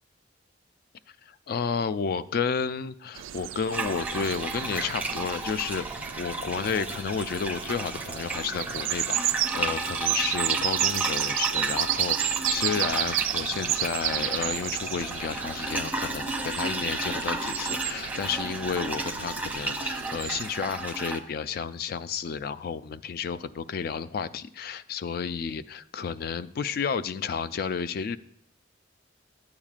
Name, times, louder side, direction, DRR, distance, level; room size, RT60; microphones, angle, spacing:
voice 1, 1.1-5.9 6.2-28.2, left 6 dB, 50° left, 14 dB, 0.3 m, -31 dB
sound 1, 3.2-20.4, right 14 dB, 85° right, 0.3 m, -32 dB
sound 2, 3.7-21.2, right 2 dB, 10° right, 0.5 m, -33 dB
12.0 x 8.7 x 2.4 m, 0.68 s
head